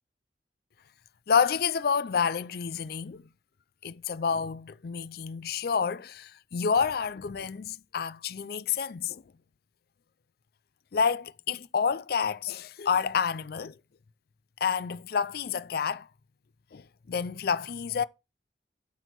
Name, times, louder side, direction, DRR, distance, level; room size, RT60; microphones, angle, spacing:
voice 1, 1.3-3.2 3.8-9.2 10.9-13.8 14.6-16.1 16.7-18.0, left 6 dB, 55° left, 0.4 m, -29 dB
11.5 x 4.6 x 4.5 m
head